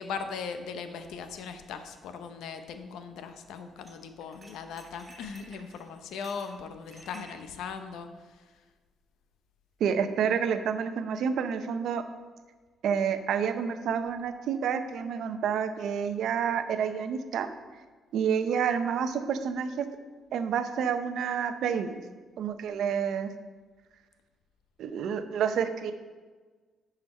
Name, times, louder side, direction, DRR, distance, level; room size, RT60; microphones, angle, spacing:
voice 1, 0.0-8.5, left 5 dB, 85° left, 8 dB, 0.7 m, -39 dB
sound 1, 3.8-3.9 4.2-7.3, right 1 dB, 25° right, 2.3 m, -52 dB
voice 2, 9.8-12.0 12.8-17.5 18.1-19.9 20.3-22.0 22.4-23.3 24.8-25.9, right 7 dB, 75° right, 9 dB, 0.6 m, -29 dB
10.5 x 5.1 x 4.3 m, 1.4 s
cardioid pair, 90°, 0 cm